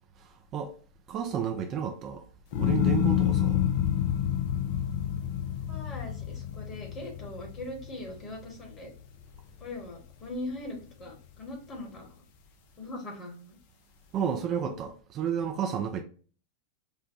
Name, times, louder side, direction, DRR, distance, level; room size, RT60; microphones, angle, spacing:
voice 1, 0.2-0.8 1.1-2.2 2.6-3.6 14.1-16.0, right 8 dB, 35° right, 0.4 m, -32 dB
sound 1, 2.5-8.9 9.3-9.9, left 10 dB, 50° left, 0.4 m, -28 dB
voice 2, 5.7-8.9 9.6-12.2 12.8-13.6, left 1 dB, 25° left, 1.3 m, -40 dB
5.4 x 2.2 x 2.6 m
figure-of-eight pair, 90°, 0 cm